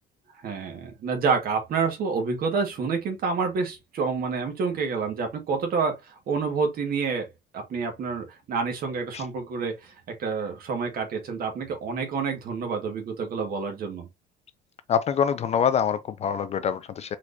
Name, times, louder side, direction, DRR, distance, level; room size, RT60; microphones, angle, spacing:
voice 1, 0.4-7.3 7.5-14.1, right 5 dB, 45° right, 1.8 m, -28 dB
voice 2, 14.9-17.2, left 7 dB, 30° left, 0.3 m, -25 dB
4.7 x 4.1 x 2.6 m
cardioid pair, 165°, 21 cm